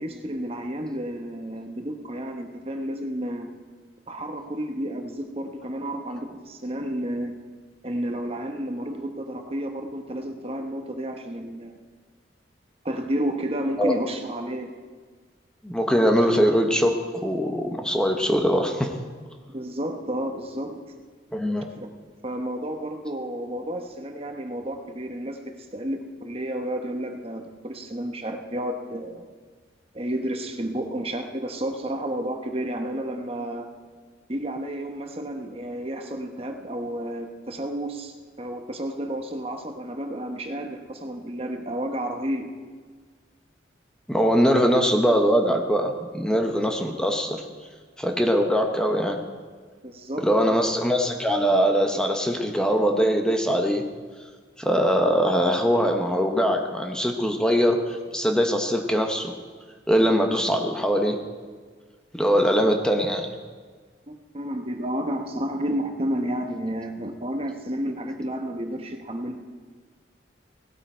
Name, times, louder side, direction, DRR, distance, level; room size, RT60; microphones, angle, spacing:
voice 1, 0.0-3.5 4.1-7.3 7.8-11.8 12.8-14.7 16.2-16.3 19.5-20.9 21.8-21.9 22.2-29.3 29.9-33.7 34.3-42.5 49.8-50.6 62.4-62.5 64.1-69.4, right 1 dB, 30° right, 5 dB, 1.1 m, -31 dB
voice 2, 15.6-18.9 21.3-21.7 44.1-47.4 48.0-49.2 50.2-53.8 54.6-59.3 59.9-61.2 62.1-63.3, equal, 5° left, 3 dB, 0.9 m, -22 dB
17.5 x 13.0 x 4.5 m, 1.5 s
head